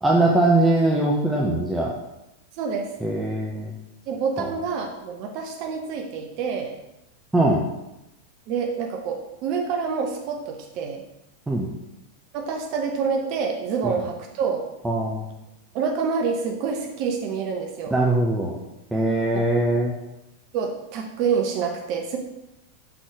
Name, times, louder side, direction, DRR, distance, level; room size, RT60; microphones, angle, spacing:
voice 1, 0.0-1.9 3.0-3.7 4.4-4.5 7.3-7.6 11.5-11.7 13.8-13.9 14.8-15.3 17.9-18.6 18.9-19.9, right 2 dB, 10° right, -3 dB, 0.8 m, -21 dB
voice 2, 2.6-2.9 4.1-6.7 8.5-11.0 12.3-14.6 15.7-17.9 20.5-22.2, right 5 dB, 45° right, 3 dB, 0.8 m, -27 dB
5.8 x 4.1 x 4.7 m, 0.93 s
figure-of-eight pair, 90°, 0 cm